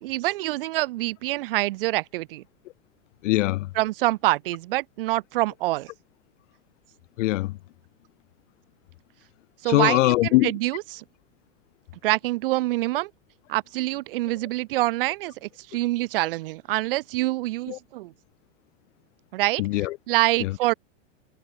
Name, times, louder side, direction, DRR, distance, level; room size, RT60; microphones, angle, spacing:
voice 1, 0.0-2.4 3.8-5.9 9.6-11.0 12.0-13.1 13.5-18.1 19.3-19.6 20.1-20.7, right 18 dB, 50° right, 0.5 m, -26 dB
voice 2, 3.2-3.7 7.2-7.6 9.6-10.5 17.7-17.8 19.6-20.0 20.4-20.5, left 18 dB, 80° left, 0.5 m, -22 dB
supercardioid pair, 165°, 36 cm